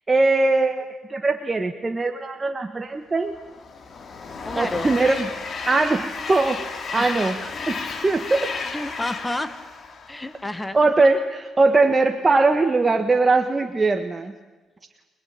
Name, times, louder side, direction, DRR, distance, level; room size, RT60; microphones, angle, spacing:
voice 1, 0.1-3.3 4.5-5.3 5.7-7.4 7.7-8.5 10.7-14.3, right 3 dB, 25° right, 5 dB, 1.6 m, -21 dB
Train, 3.3-10.7, left 5 dB, 45° left, 3.0 m, -33 dB
voice 2, 4.4-4.9 7.0-7.6 8.7-9.5 10.1-10.8, left 1 dB, 10° left, 10 dB, 1.9 m, -30 dB
25.5 x 21.0 x 9.0 m, 1.2 s
cardioid pair, 90°, 0 cm